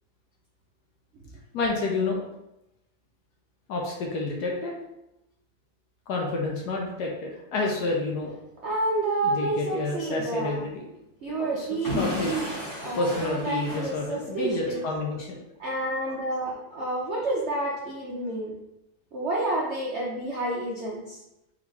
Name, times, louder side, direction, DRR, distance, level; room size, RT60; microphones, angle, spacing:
voice 1, 1.5-2.2 3.7-4.7 6.1-8.3 9.2-10.8 11.3-12.5 13.0-15.4, left 2 dB, 65° left, -1 dB, 1.1 m, -29 dB
voice 2, 8.6-10.6 11.2-14.8 15.6-18.5 19.1-21.2, right 2 dB, 75° right, -4 dB, 0.6 m, -29 dB
Explosion / Shatter, 11.8-14.6, left 1 dB, 15° left, 0.8 m, -33 dB
3.7 x 3.5 x 3.2 m, 0.87 s
omnidirectional pair, 2.1 m